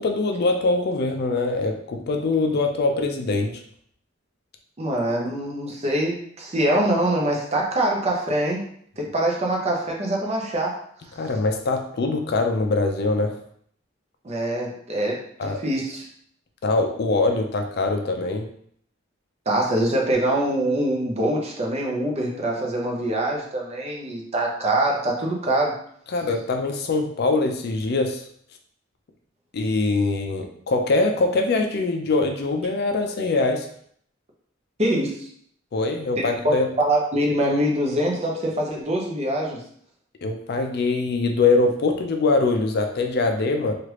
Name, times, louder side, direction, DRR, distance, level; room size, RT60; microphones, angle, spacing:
voice 1, 0.0-3.6 11.2-13.4 15.4-15.6 16.6-18.5 26.1-28.2 29.5-33.7 35.7-36.7 40.2-43.7, left 3 dB, 55° left, 4 dB, 0.4 m, -23 dB
voice 2, 4.8-8.6 9.0-10.7 14.2-16.1 19.5-25.8 34.8-35.3 36.2-39.6, right 1 dB, 35° right, -1 dB, 0.6 m, -24 dB
3.2 x 2.4 x 3.0 m, 0.64 s
head